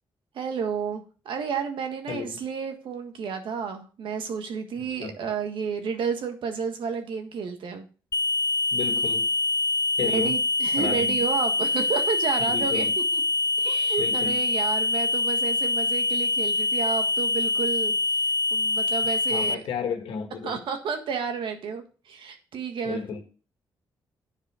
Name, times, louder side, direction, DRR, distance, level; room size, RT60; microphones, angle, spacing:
voice 1, 0.3-7.9 10.0-12.9 13.1-13.2 13.6-17.9 18.5-19.6 20.4-23.0, right 6 dB, 75° right, 1.6 m, -31 dB
voice 2, 2.1-2.4 4.8-5.2 8.7-9.3 10.0-10.4 10.8-11.2 12.4-12.9 14.0-14.4 19.3-20.6 22.8-23.2, left 7 dB, 80° left, 1.7 m, -33 dB
sound 1, 8.1-19.5, left 2 dB, 40° left, 0.5 m, -25 dB
9.7 x 5.0 x 5.0 m
cardioid pair, 85°, 9 cm